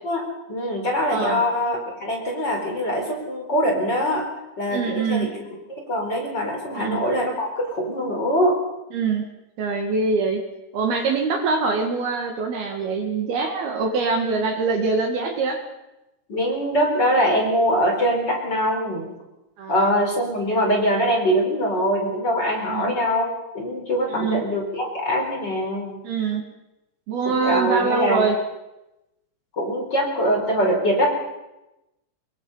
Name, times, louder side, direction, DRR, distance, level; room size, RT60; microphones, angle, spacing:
voice 1, 0.5-4.3 4.6-8.6 16.3-19.1 19.7-26.0 27.2-28.3 29.5-31.1, equal, 25° left, 0 dB, 4.4 m, -23 dB
voice 2, 1.1-1.4 4.7-5.3 6.8-7.0 8.9-9.3 9.6-10.4 10.7-15.6 19.6-19.9 22.7-22.9 24.1-24.4 26.0-26.4 27.1-28.4, right 4 dB, 60° right, 3 dB, 3.5 m, -24 dB
25.0 x 22.5 x 5.6 m, 0.95 s
omnidirectional pair, 5.4 m